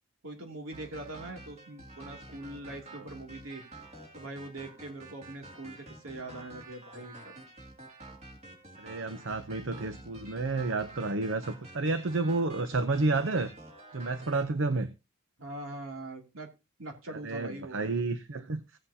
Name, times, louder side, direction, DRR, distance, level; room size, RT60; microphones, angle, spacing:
voice 1, 0.2-3.6 4.1-7.3 15.4-16.5 16.8-17.8, right 2 dB, 85° right, 2 dB, 2.7 m, -42 dB
sound 1, 0.7-14.4, right 2 dB, 35° right, 2.6 m, -49 dB
voice 2, 8.8-13.5 13.9-14.9 17.2-18.6, right 3 dB, 65° right, 10 dB, 0.7 m, -30 dB
16.5 x 7.7 x 2.8 m, 0.27 s
head